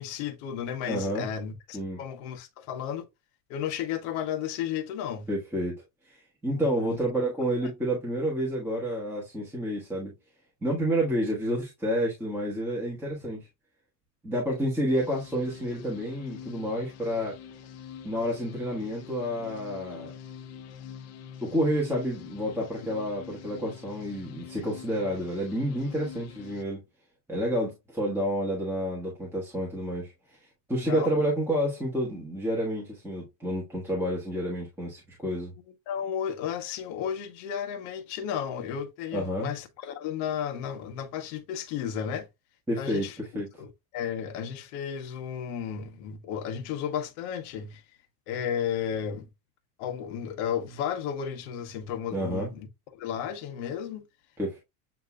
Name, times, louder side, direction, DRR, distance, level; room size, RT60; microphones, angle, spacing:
voice 1, 0.0-3.0 3.5-5.3 6.5-7.0 30.8-31.1 35.9-42.3 42.8-43.2 43.6-47.8 48.3-49.3 49.8-52.7 52.9-54.0, left 8 dB, 75° left, 1.1 m, -33 dB
voice 2, 0.9-1.3 1.7-2.0 5.3-5.8 6.1-10.1 10.6-13.4 14.2-17.4 18.0-20.1 21.4-26.8 27.3-30.1 30.7-35.5 39.1-39.5 42.7-43.5 52.1-52.5 54.4-54.6, equal, 5° right, 1.4 m, -29 dB
sound 1, 14.9-26.6, left 7 dB, 35° left, 0.6 m, -45 dB
7.9 x 2.9 x 2.3 m
cardioid pair, 155°, 43 cm